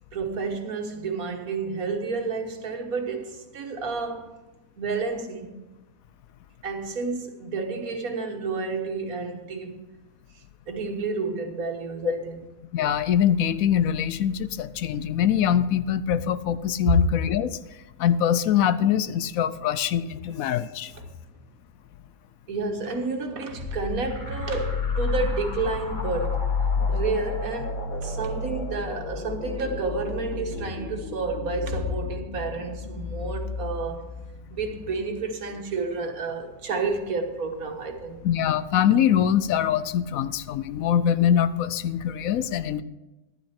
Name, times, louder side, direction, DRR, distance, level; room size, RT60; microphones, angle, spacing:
voice 1, 0.1-4.4 4.8-5.6 6.6-9.8 10.7-12.4 21.0-21.1 22.5-26.5 26.9-34.1 34.5-38.2, right 4 dB, 80° right, 1.7 m, -30 dB
voice 2, 12.7-17.6 18.0-20.9 38.2-42.8, left 9 dB, 75° left, 1.0 m, -23 dB
sound 1, 23.6-34.9, left 4 dB, 35° left, 1.3 m, -31 dB
11.5 x 11.5 x 4.4 m
omnidirectional pair, 1.5 m